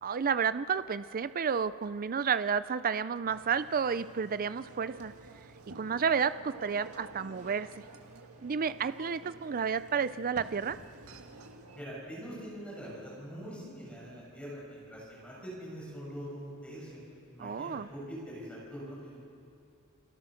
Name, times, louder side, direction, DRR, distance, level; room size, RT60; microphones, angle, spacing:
voice 1, 0.0-5.1 5.8-7.8 8.4-10.8 17.4-17.9, right 6 dB, 40° right, 14 dB, 0.5 m, -31 dB
sound 1, 3.2-11.9, right 3 dB, 90° right, 1.8 m, -50 dB
voice 2, 11.7-17.0 17.3-19.2, equal, 5° left, -6 dB, 7.2 m, -43 dB
29.0 x 24.5 x 6.4 m, 2.8 s
head